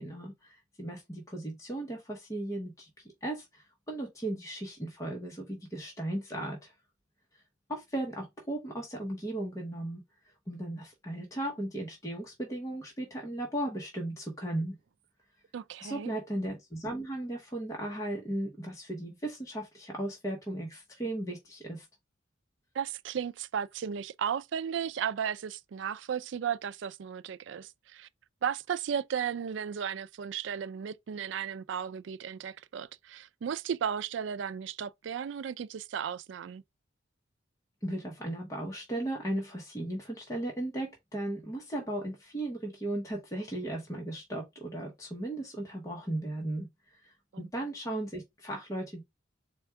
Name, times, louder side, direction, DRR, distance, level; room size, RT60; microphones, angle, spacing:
voice 1, 0.0-6.7 7.7-10.0 10.5-14.7 15.8-21.9 37.8-46.7 46.9-49.0, right 1 dB, 15° left, 0.9 m, -36 dB
voice 2, 15.5-16.1 22.7-28.1 28.4-36.6 47.3-47.5, right 8 dB, 70° right, 0.3 m, -35 dB
4.3 x 2.3 x 4.5 m
head